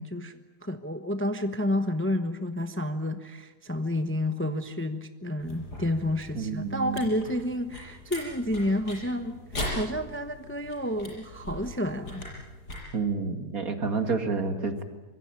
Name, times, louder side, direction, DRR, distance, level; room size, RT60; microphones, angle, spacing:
voice 1, 0.0-9.4 9.7-12.2, left 1 dB, 10° left, 8 dB, 0.9 m, -30 dB
sound 1, 5.4-12.8, left 1 dB, 85° left, 7.4 m, -40 dB
voice 2, 6.4-7.0 12.9-14.8, right 4 dB, 60° right, 7 dB, 2.5 m, -29 dB
25.0 x 21.5 x 8.9 m, 1.2 s
omnidirectional pair, 1.7 m